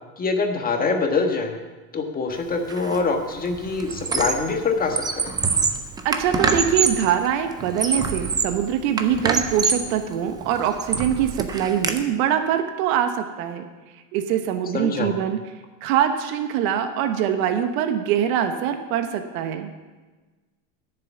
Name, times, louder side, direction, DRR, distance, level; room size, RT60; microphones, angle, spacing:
voice 1, 0.2-1.6 1.9-5.3 14.7-15.1, left 4 dB, 20° left, 4 dB, 1.4 m, -24 dB
Squeak, 2.7-3.0 3.3-4.5 4.8-7.1 7.6-8.6 9.0-9.9 10.4-12.0, right 5 dB, 10° right, 0.3 m, -25 dB
voice 2, 6.0-13.7 14.1-15.4 15.8-19.7, right 9 dB, 65° right, 7 dB, 1.2 m, -23 dB
10.5 x 7.0 x 8.2 m, 1.3 s
supercardioid pair, 135°, 46 cm